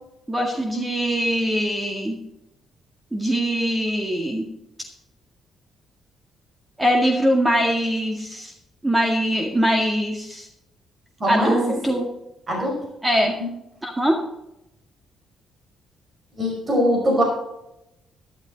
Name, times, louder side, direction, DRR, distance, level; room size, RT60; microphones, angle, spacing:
voice 1, 0.3-2.2 3.1-4.5 6.8-8.5 8.8-10.5 11.3-12.1 13.0-13.4 13.8-14.2, equal, 15° right, 2 dB, 1.9 m, -22 dB
voice 2, 11.2-11.6 11.9-12.0 12.5-12.8 13.4-13.5 16.4-17.2, equal, 35° right, -1 dB, 5.2 m, -22 dB
12.0 x 12.0 x 4.0 m, 0.85 s
cardioid pair, 90°, 0 cm